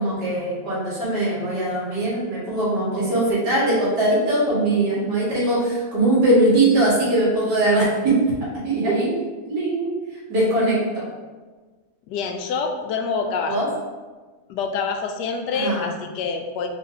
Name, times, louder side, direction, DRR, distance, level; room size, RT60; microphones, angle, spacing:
voice 1, 0.0-8.2 8.6-9.1 9.5-9.9 10.3-11.1 13.5-13.7 15.5-15.9, right 1 dB, 75° right, -7 dB, 2.2 m, -21 dB
voice 2, 12.1-13.8 14.5-16.7, left 5 dB, 85° left, 5 dB, 1.2 m, -26 dB
4.3 x 3.3 x 3.8 m, 1.3 s
omnidirectional pair, 1.8 m